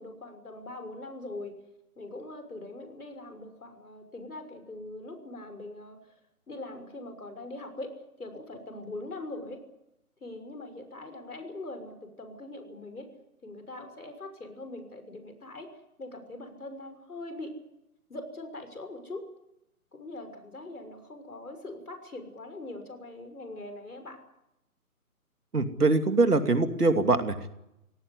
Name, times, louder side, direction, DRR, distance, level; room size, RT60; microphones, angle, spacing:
voice 1, 0.0-1.6 2.0-6.0 6.5-9.6 10.2-13.1 13.4-15.7 16.0-17.5 18.1-19.3 19.9-24.2, left 2 dB, 75° left, 7 dB, 6.3 m, -42 dB
voice 2, 25.5-27.5, right 3 dB, 80° right, 7 dB, 2.9 m, -23 dB
23.5 x 18.0 x 10.0 m, 0.86 s
figure-of-eight pair, 145°, 45 cm